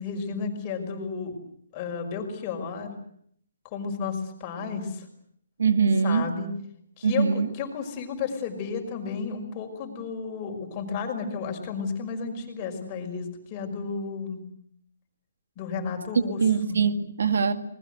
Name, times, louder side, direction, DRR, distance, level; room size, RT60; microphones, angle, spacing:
voice 1, 0.0-1.3 1.7-2.9 3.7-5.1 6.0-6.5 7.0-14.5 15.6-16.4 16.7-16.8, left 5 dB, 25° left, 3 dB, 5.6 m, -32 dB
voice 2, 5.6-6.3 7.0-7.5 16.4-17.5, right 5 dB, 70° right, 10 dB, 2.1 m, -22 dB
28.0 x 21.0 x 8.1 m, 0.66 s
hypercardioid pair, 160°, 0 cm